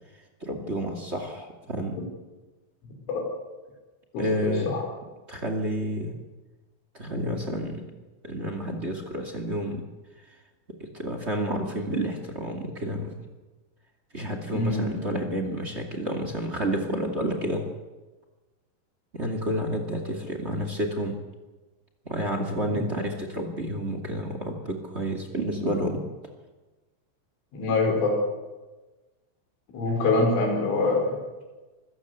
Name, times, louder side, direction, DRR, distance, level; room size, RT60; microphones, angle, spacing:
voice 1, 0.4-2.0 4.2-4.7 5.3-6.2 6.9-7.9 8.2-9.8 10.8-13.2 14.1-17.6 19.1-21.2 22.0-26.0, right 1 dB, 30° right, 5 dB, 1.3 m, -30 dB
voice 2, 4.1-4.8 14.5-14.9 22.7-22.9 27.5-28.2 29.7-31.1, left 3 dB, 85° left, 2 dB, 7.5 m, -24 dB
26.5 x 15.5 x 8.2 m, 1.2 s
omnidirectional pair, 5.4 m